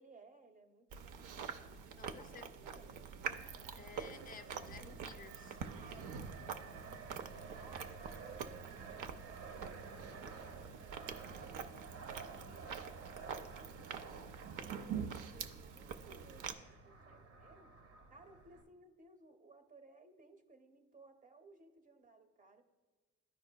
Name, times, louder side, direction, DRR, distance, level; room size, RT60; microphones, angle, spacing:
voice 1, 0.0-3.0 5.8-6.8 7.5-11.7 12.1-12.8 13.2-14.3 14.6-17.8 18.1-22.6, right 3 dB, 25° right, 6 dB, 0.7 m, -61 dB
Chewing mastication, 0.9-16.5, right 6 dB, 85° right, 0.5 m, -46 dB
voice 2, 2.0-2.5 3.7-5.6, left 5 dB, 30° left, 10 dB, 0.5 m, -54 dB
Fixed-wing aircraft airplane, 3.4-18.6, right 5 dB, 70° right, 0.9 m, -53 dB
12.5 x 4.8 x 2.2 m, 1.3 s
cardioid pair, 90°, 30 cm